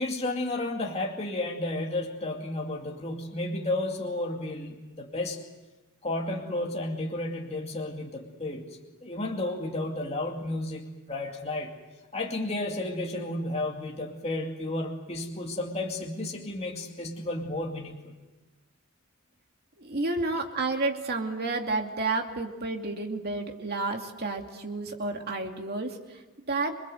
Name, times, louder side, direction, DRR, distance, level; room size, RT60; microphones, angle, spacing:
voice 1, 0.0-5.4 6.0-8.7 9.0-11.7 12.1-18.1, left 2 dB, 30° left, 0 dB, 2.4 m, -32 dB
voice 2, 19.8-26.8, right 3 dB, 50° right, 4 dB, 2.5 m, -31 dB
27.0 x 21.5 x 8.0 m, 1.1 s
head